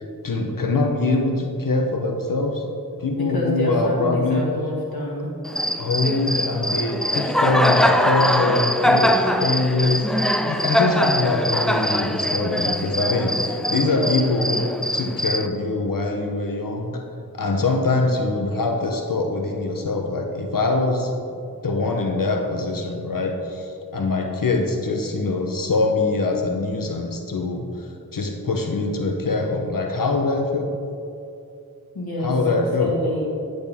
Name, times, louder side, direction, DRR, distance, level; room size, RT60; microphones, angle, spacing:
voice 1, 0.0-2.6 3.0-4.5 5.8-10.1 10.4-14.6 14.9-17.0 17.4-21.1 21.6-27.7 28.1-30.7 32.2-32.9, left 3 dB, 65° left, 2 dB, 0.9 m, -23 dB
voice 2, 3.0-5.3 31.9-33.3, left 1 dB, 85° left, -4 dB, 1.7 m, -27 dB
Cricket, 5.4-15.5, equal, ahead, 0.4 m, -22 dB
10.0 x 6.4 x 3.6 m, 2.5 s
wide cardioid pair, 45°, 36 cm